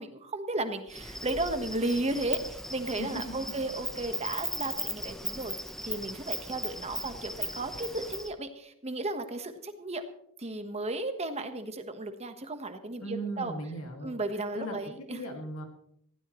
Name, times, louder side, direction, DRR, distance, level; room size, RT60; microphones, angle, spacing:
voice 1, 0.0-5.6 5.8-10.0 10.4-13.5 14.0-15.2, right 2 dB, 30° right, 7 dB, 1.4 m, -34 dB
Insect, 0.9-8.3, equal, ahead, 1.0 m, -37 dB
voice 2, 3.0-3.5 13.0-14.1 14.5-14.7 15.1-15.6, right 1 dB, 80° left, 3 dB, 2.4 m, -37 dB
19.5 x 15.5 x 3.2 m, 0.73 s
head